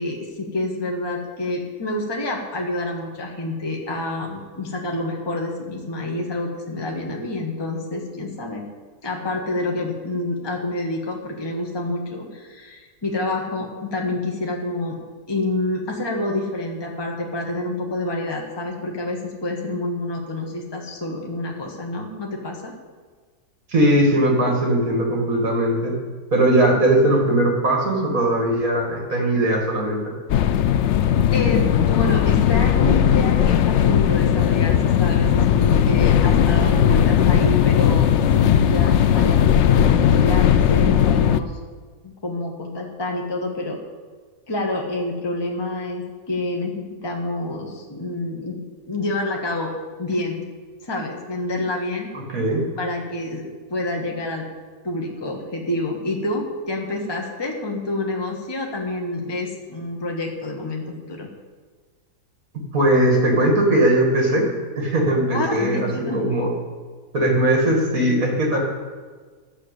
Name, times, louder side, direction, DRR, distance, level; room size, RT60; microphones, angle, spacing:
voice 1, 0.0-8.6 9.0-15.0 15.3-22.7 31.3-41.6 42.0-43.8 44.5-48.6 48.9-49.7 50.0-50.4 50.8-52.1 52.8-54.5 54.8-61.3 65.3-66.2, left 2 dB, 15° left, 0 dB, 1.3 m, -28 dB
voice 2, 23.7-25.9 26.3-30.1 52.1-52.7 62.7-64.5 64.8-66.5 67.1-68.6, right 1 dB, 65° right, 0 dB, 2.6 m, -19 dB
sound 1, 30.3-41.4, left 9 dB, 70° left, 0.7 m, -17 dB
11.5 x 6.4 x 8.2 m, 1.5 s
omnidirectional pair, 1.6 m